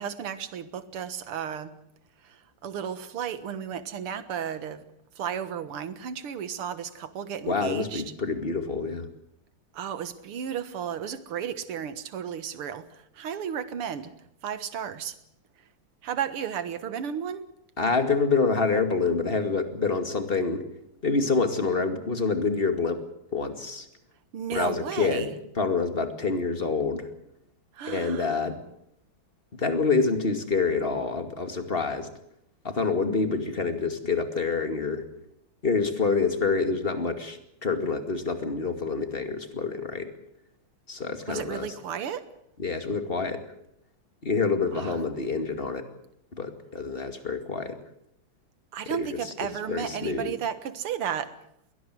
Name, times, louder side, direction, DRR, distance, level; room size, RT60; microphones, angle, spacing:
voice 1, 0.0-1.8 2.2-4.8 5.2-8.0 9.7-14.1 14.4-15.2 16.0-17.5 24.3-25.3 27.7-28.4 41.3-42.3 44.7-45.0 48.7-51.4, right 8 dB, 85° right, 2.3 m, -33 dB
voice 2, 7.5-9.1 17.8-20.6 21.0-23.0 23.3-23.9 24.5-25.3 25.6-27.1 27.9-28.6 29.5-32.1 32.6-35.0 35.6-40.1 40.9-41.7 42.6-43.5 44.2-45.9 46.3-47.8 48.9-50.3, left 4 dB, 25° left, 2.3 m, -27 dB
22.0 x 18.0 x 7.8 m
omnidirectional pair, 2.4 m